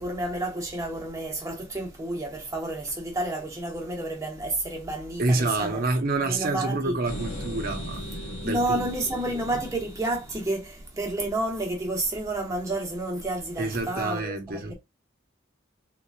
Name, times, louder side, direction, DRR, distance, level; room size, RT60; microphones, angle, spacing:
voice 1, 0.0-5.8 6.2-6.9 8.4-14.7, right 2 dB, 15° right, 1.2 m, -30 dB
voice 2, 5.2-8.0 8.4-8.9 13.6-14.7, right 2 dB, 50° right, 0.8 m, -27 dB
sound 1, 7.1-10.9, equal, 85° left, 1.5 m, -38 dB
3.7 x 3.0 x 2.3 m
head